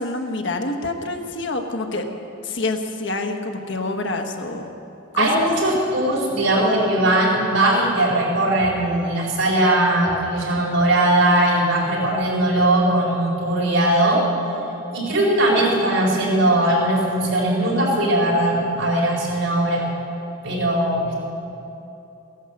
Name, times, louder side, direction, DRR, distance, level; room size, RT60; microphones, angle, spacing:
voice 1, 0.0-2.1 2.4-4.7 5.1-5.4 15.1-15.4, left 2 dB, 65° left, 4 dB, 1.3 m, -27 dB
voice 2, 5.2-14.2 14.9-19.9 20.4-21.2, right 1 dB, 90° right, -3 dB, 4.7 m, -19 dB
16.0 x 11.0 x 7.9 m, 2.9 s
head